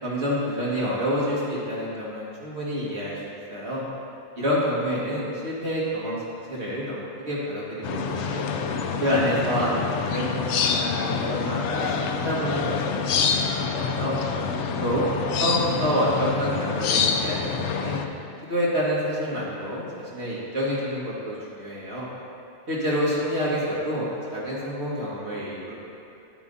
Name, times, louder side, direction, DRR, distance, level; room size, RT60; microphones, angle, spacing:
voice 1, 0.0-3.8 4.4-6.2 6.5-8.5 9.0-14.2 14.8-15.1 15.4-18.0 18.5-22.1 22.7-25.7, equal, 70° right, -7 dB, 2.3 m, -28 dB
sound 1, 7.8-18.0, left 5 dB, 80° left, 0.9 m, -26 dB
11.5 x 8.8 x 2.7 m, 2.6 s
omnidirectional pair, 1.2 m